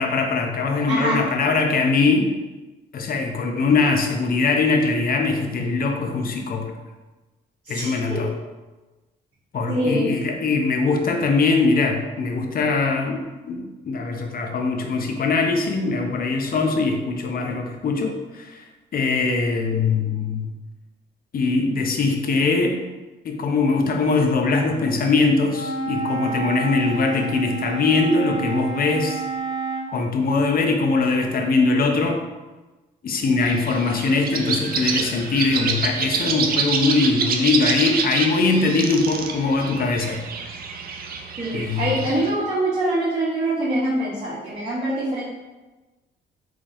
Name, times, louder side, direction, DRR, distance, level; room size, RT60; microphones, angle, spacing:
voice 1, 0.0-2.3 2.9-6.7 7.7-8.3 9.5-18.7 18.9-20.5 21.3-22.8 23.2-29.2 29.9-32.2 33.0-40.2 41.5-42.0, left 3 dB, 50° left, 3 dB, 0.6 m, -21 dB
voice 2, 0.9-1.3 7.6-8.2 9.7-10.1 41.4-45.2, right 1 dB, 30° right, -9 dB, 1.0 m, -24 dB
Wind instrument woodwind instrument, 25.5-29.9, right 4 dB, 70° right, 0.8 m, -29 dB
sound 1, 33.4-42.3, right 5 dB, 50° right, 0.4 m, -27 dB
3.6 x 3.1 x 2.6 m, 1.2 s
cardioid pair, 90°, 20 cm